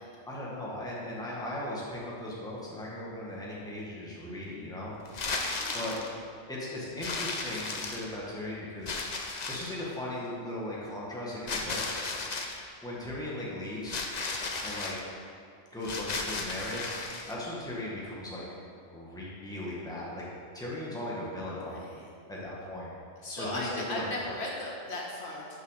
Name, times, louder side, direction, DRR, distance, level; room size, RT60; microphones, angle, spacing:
voice 1, 0.2-4.9 5.7-6.0 6.5-9.0 9.5-12.0 12.8-14.0 14.6-14.9 15.7-17.0 17.2-18.5 18.9-20.2 20.5-21.8 22.3-22.9 23.3-24.1, left 1 dB, 5° left, -6 dB, 1.6 m, -37 dB
sound 1, 5.1-6.1 7.0-8.3 8.9-9.8 11.5-12.6 13.9-15.0 15.8-17.3, left 3 dB, 45° left, 0.7 m, -35 dB
voice 2, 5.5-6.0 21.5-22.1 23.2-25.5, left 1 dB, 70° left, -4 dB, 1.7 m, -37 dB
6.6 x 6.0 x 6.5 m, 2.3 s
omnidirectional pair, 1.2 m